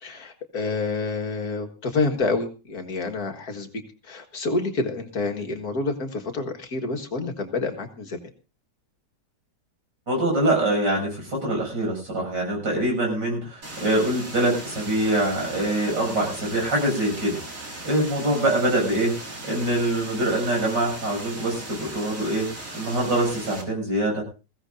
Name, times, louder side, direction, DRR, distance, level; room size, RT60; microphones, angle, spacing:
voice 1, 0.0-8.3, left 3 dB, 60° left, 4 dB, 2.1 m, -28 dB
voice 2, 10.1-17.4 17.9-19.2 19.4-22.5 22.7-24.2, right 1 dB, 80° right, 0 dB, 7.6 m, -24 dB
sound 1, 13.6-23.6, right 2 dB, 50° right, 3.0 m, -38 dB
21.0 x 15.5 x 2.6 m, 0.34 s
omnidirectional pair, 1.9 m